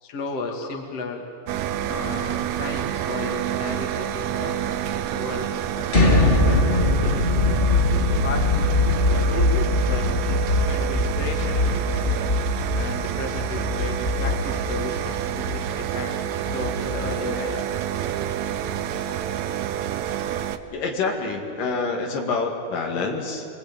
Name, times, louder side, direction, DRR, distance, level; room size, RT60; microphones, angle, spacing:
voice 1, 0.0-1.2 1.8-4.6 5.1-7.4 8.0-8.9 9.1-12.1 12.7-17.8, left 3 dB, 50° left, 3 dB, 3.2 m, -34 dB
sound 1, 1.5-20.6, right 10 dB, 70° right, 2.0 m, -28 dB
sound 2, 5.9-17.7, left 2 dB, 20° left, 1.7 m, -22 dB
voice 2, 20.7-23.5, left 4 dB, 80° left, 2 dB, 3.9 m, -27 dB
26.0 x 22.0 x 8.9 m, 2.3 s
omnidirectional pair, 3.8 m